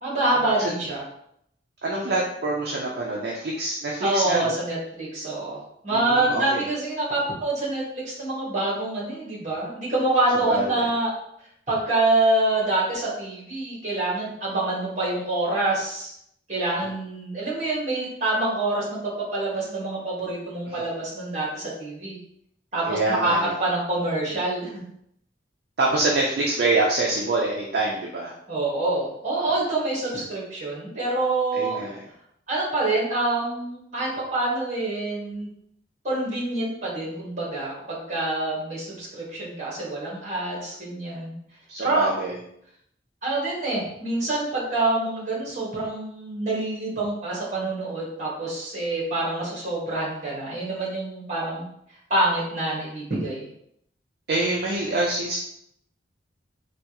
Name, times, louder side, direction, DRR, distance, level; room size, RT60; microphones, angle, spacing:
voice 1, 0.0-1.0 4.0-11.1 11.7-16.1 16.5-22.2 22.7-23.3 23.6-24.8 28.5-31.8 32.5-35.5 36.0-41.3 41.8-42.1 43.2-51.7 52.1-53.4, right 2 dB, 40° right, -5 dB, 1.2 m, -26 dB
voice 2, 1.8-4.5 5.9-6.6 10.5-10.9 20.7-20.8 22.9-23.5 25.8-28.3 31.5-32.0 41.7-42.4 54.3-55.4, right 2 dB, 55° right, -3 dB, 0.4 m, -25 dB
3.3 x 2.3 x 2.9 m, 0.74 s
head